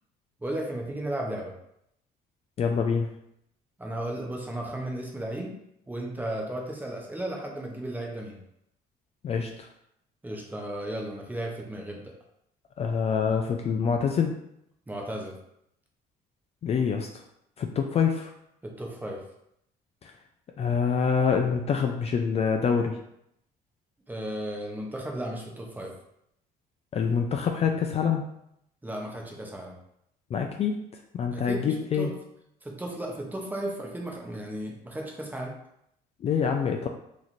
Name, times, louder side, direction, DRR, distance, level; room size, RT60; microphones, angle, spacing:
voice 1, 0.4-1.5 3.8-5.5 5.9-8.4 10.2-12.1 14.9-15.3 18.6-19.2 24.1-25.9 28.8-29.8 31.3-32.2 32.6-35.5, right 1 dB, 10° right, 0 dB, 0.8 m, -34 dB
voice 2, 2.6-3.1 9.2-9.7 12.8-14.4 16.6-17.2 17.6-18.3 20.0-20.1 20.6-23.0 26.9-28.2 30.3-30.9 31.1-32.1 36.2-36.9, left 6 dB, 40° left, 3 dB, 0.4 m, -26 dB
3.1 x 2.5 x 4.1 m, 0.77 s
cardioid pair, 110°, 17 cm